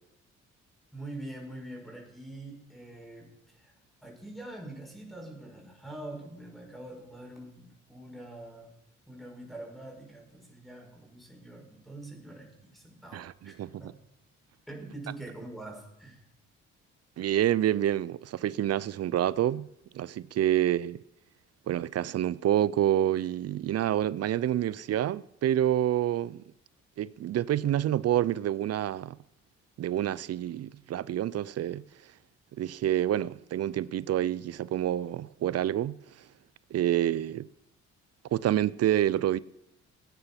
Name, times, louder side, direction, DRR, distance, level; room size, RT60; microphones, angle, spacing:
voice 1, 0.9-3.7 4.0-8.7 9.1-13.9 14.7-16.2, right 1 dB, ahead, 6.4 m, -44 dB
voice 2, 13.1-13.7 17.2-19.7 19.9-21.0 21.7-26.4 27.0-29.2 29.8-31.9 32.6-36.0 36.7-37.5 38.3-39.4, right 12 dB, 55° right, 0.5 m, -28 dB
17.5 x 9.6 x 5.8 m
supercardioid pair, 65°, 30 cm